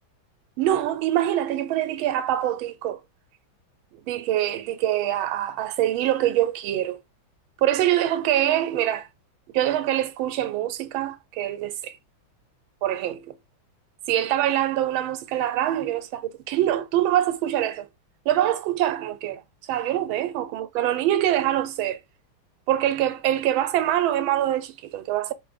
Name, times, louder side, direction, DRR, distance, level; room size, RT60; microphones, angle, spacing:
voice 1, 0.6-3.0 4.1-7.0 7.6-9.1 9.5-12.0 12.8-13.4 14.1-17.9 18.3-19.4 19.7-22.0 22.7-25.3, right 12 dB, 90° right, 1.4 m, -24 dB
4.8 x 2.5 x 3.3 m
omnidirectional pair, 2.2 m